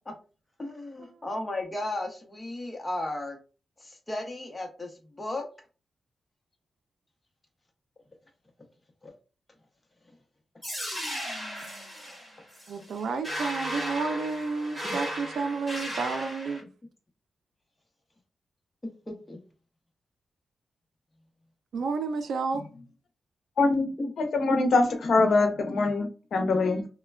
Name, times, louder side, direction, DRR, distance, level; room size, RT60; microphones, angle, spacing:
voice 1, 0.6-3.4 3.8-5.5 9.0-9.1 14.8-15.0 19.1-19.4 24.0-24.1, left 1 dB, 20° left, 0.7 m, -35 dB
sound 1, 10.6-16.6, equal, ahead, 1.4 m, -35 dB
voice 2, 12.7-16.6 21.7-22.7, right 4 dB, 85° right, 0.4 m, -31 dB
voice 3, 23.6-26.9, left 3 dB, 75° left, 0.6 m, -24 dB
3.2 x 2.1 x 2.2 m
wide cardioid pair, 120°, 0 cm